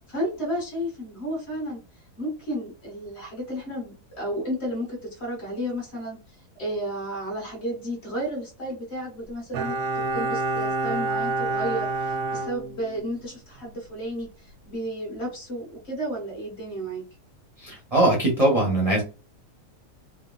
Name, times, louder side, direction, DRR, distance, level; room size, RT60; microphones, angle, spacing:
voice 1, 0.1-1.8 2.2-6.2 6.6-17.0, equal, 45° left, -2 dB, 1.5 m, -32 dB
Bowed string instrument, 9.5-13.3 13.6-13.7, right 2 dB, 85° right, 1.2 m, -28 dB
voice 2, 17.6-19.0, right 1 dB, 35° right, -2 dB, 0.6 m, -21 dB
3.4 x 2.2 x 2.3 m, 0.34 s
omnidirectional pair, 1.7 m